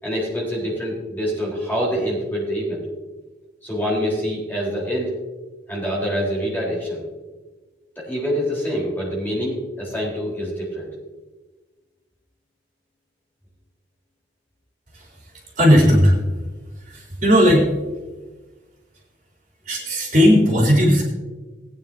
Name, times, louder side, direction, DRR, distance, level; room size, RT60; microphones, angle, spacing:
voice 1, 0.0-2.8 3.6-5.1 5.7-7.0 8.0-10.9, equal, 10° left, -5 dB, 3.8 m, -25 dB
voice 2, 15.6-16.2 16.9-17.7 19.7-21.0, equal, 45° right, -3 dB, 3.9 m, -16 dB
20.0 x 9.6 x 2.7 m, 1.2 s
head